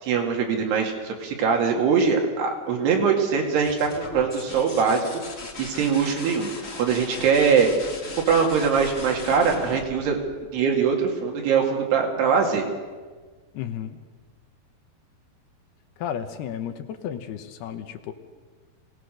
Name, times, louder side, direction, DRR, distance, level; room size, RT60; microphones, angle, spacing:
voice 1, 0.0-5.1 5.6-6.5 6.8-7.7 8.3-10.2 10.5-12.7, right 6 dB, 70° right, 2 dB, 4.2 m, -22 dB
sound 1, 3.4-11.0 12.8-13.4, left 3 dB, 35° left, 1.3 m, -38 dB
voice 2, 13.5-14.0 16.0-18.1, left 9 dB, 75° left, 8 dB, 2.9 m, -33 dB
24.5 x 18.0 x 6.5 m, 1.4 s
omnidirectional pair, 5.0 m